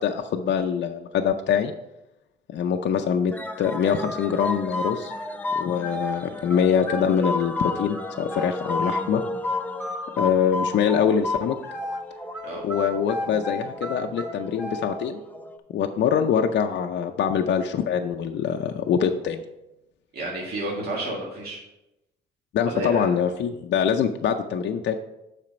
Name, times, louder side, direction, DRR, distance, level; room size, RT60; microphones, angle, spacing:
voice 1, 0.0-1.7 2.5-5.1 5.5-9.2 10.2-11.6 12.6-15.2 15.7-19.4 22.5-25.0, left 7 dB, 65° left, 4 dB, 0.5 m, -24 dB
sound 1, 3.3-15.6, left 1 dB, 10° left, 0.6 m, -37 dB
sound 2, 3.6-6.2 6.5-9.0 9.4-12.0 12.3-15.0, left 2 dB, 10° right, 2.3 m, -30 dB
voice 2, 20.1-21.6 22.7-23.1, right 1 dB, 50° right, -3 dB, 1.8 m, -31 dB
7.5 x 5.0 x 5.1 m, 0.94 s
cardioid pair, 90°, 20 cm